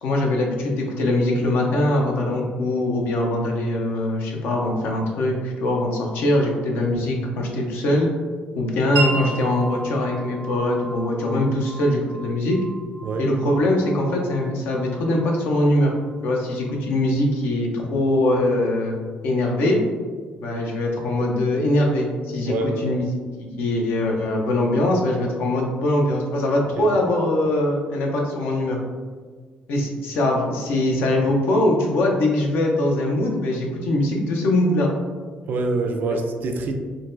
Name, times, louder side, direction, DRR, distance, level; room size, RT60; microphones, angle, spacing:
voice 1, 0.0-8.1 8.6-12.6 13.2-15.9 16.2-19.0 19.2-19.8 20.4-28.8 29.7-34.9, left 1 dB, 75° left, 0 dB, 0.6 m, -22 dB
Wind chime, 9.0-16.6, right 3 dB, 85° right, 0.8 m, -35 dB
voice 2, 22.5-23.0 26.8-26.9 35.5-36.7, right 3 dB, 60° right, 4 dB, 0.4 m, -25 dB
3.8 x 2.2 x 2.6 m, 1.5 s
supercardioid pair, 75°, 3 cm